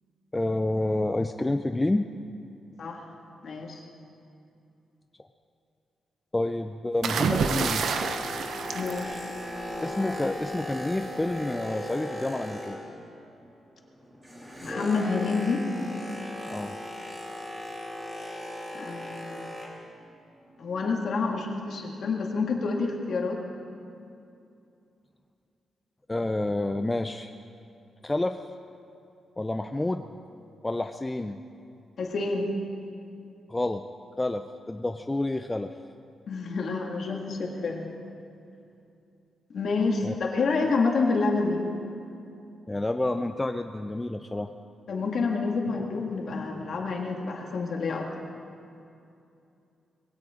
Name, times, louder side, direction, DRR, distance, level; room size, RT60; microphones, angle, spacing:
voice 1, 0.3-2.1 6.3-7.8 9.8-12.8 16.5-16.8 26.1-27.3 28.0-28.4 29.4-30.1 30.6-31.4 33.5-33.8 34.2-35.7 40.0-40.1 42.7-44.5, left 2 dB, 10° left, 7 dB, 0.4 m, -29 dB
voice 2, 3.4-3.8 8.7-9.1 14.6-15.7 18.7-19.5 20.6-23.4 32.0-32.5 36.3-37.9 39.5-41.6 44.9-48.1, left 4 dB, 50° left, 1 dB, 1.9 m, -28 dB
sound 1, 7.0-9.8 11.0-11.3, right 6 dB, 65° right, 0.7 m, -29 dB
Boat Water vehicle, 7.2-13.2 13.4-19.9 20.5-20.7, left 1 dB, 10° right, 2.6 m, -37 dB
21.0 x 17.0 x 3.7 m, 2.6 s
wide cardioid pair, 170°, 0 cm